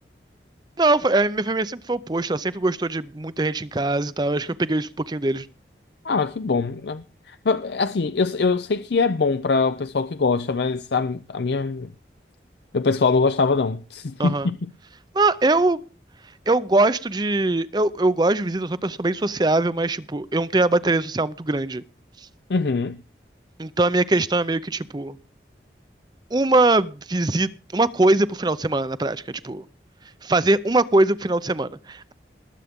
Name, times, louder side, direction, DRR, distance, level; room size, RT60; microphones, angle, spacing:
voice 1, 0.8-5.5 14.2-14.5 15.1-15.8 16.5-21.8 23.6-25.2 26.3-29.6 30.2-32.1, right 2 dB, 25° right, 0.5 m, -22 dB
voice 2, 6.0-11.9 12.7-14.7 22.5-23.0, left 4 dB, 70° left, 0.5 m, -23 dB
20.5 x 8.2 x 3.6 m
head